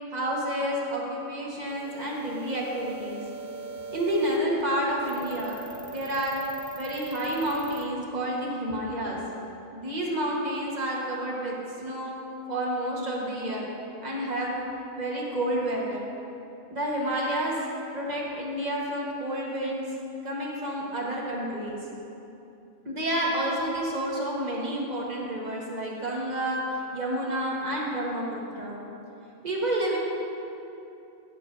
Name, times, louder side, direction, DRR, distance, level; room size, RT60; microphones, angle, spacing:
voice 1, 0.1-3.2 3.9-5.6 5.9-6.4 6.7-9.2 9.7-12.2 12.5-13.7 14.0-14.6 15.0-16.0 16.7-17.5 17.9-19.8 20.2-21.8 22.8-28.8 29.4-30.0, right 1 dB, 35° right, -3 dB, 1.4 m, -29 dB
sound 1, 1.7-7.8, right 4 dB, 50° right, 0.4 m, -41 dB
14.5 x 7.2 x 2.7 m, 2.8 s
omnidirectional pair, 1.4 m